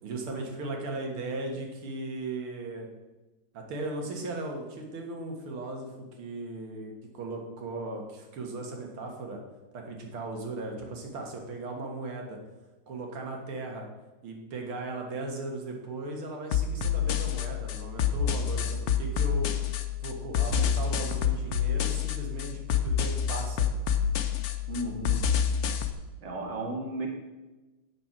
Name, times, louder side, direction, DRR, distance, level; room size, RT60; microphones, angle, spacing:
voice 1, 0.0-2.9 3.5-9.4 9.7-12.4 12.9-13.9 14.2-19.5 20.0-23.7, right 2 dB, 85° right, 1 dB, 2.4 m, -37 dB
sound 1, 16.5-25.9, left 8 dB, 65° left, 0.9 m, -28 dB
voice 2, 24.7-25.3 26.2-27.1, right 1 dB, 35° right, 0 dB, 1.9 m, -34 dB
8.6 x 6.3 x 5.9 m, 1.1 s
omnidirectional pair, 2.3 m